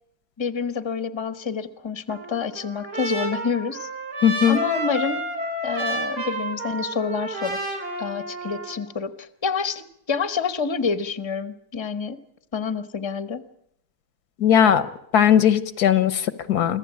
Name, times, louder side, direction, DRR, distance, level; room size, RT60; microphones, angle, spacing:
voice 1, 0.4-3.9 4.5-5.2 5.6-12.2 12.5-13.4, left 5 dB, 20° left, 12 dB, 1.0 m, -28 dB
Trumpet, 2.1-8.8, right 1 dB, 85° right, 4.4 m, -30 dB
voice 2, 4.2-4.6 14.4-14.8 15.1-16.8, left 9 dB, 80° left, 14 dB, 1.6 m, -18 dB
25.5 x 15.5 x 8.6 m, 0.76 s
omnidirectional pair, 1.7 m